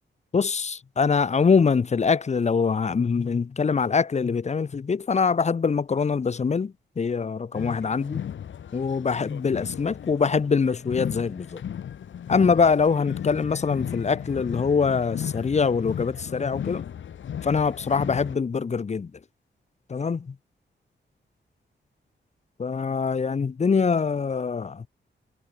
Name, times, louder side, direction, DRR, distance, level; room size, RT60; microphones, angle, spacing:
voice 1, 0.3-8.2 8.7-11.6 12.3-16.8 17.4-19.1 19.9-20.3 22.6-24.9, left 5 dB, 35° left, 1.3 m, -24 dB
sound 1, 7.5-18.3, left 9 dB, 80° left, 1.5 m, -35 dB
wide cardioid pair, 175°, 19 cm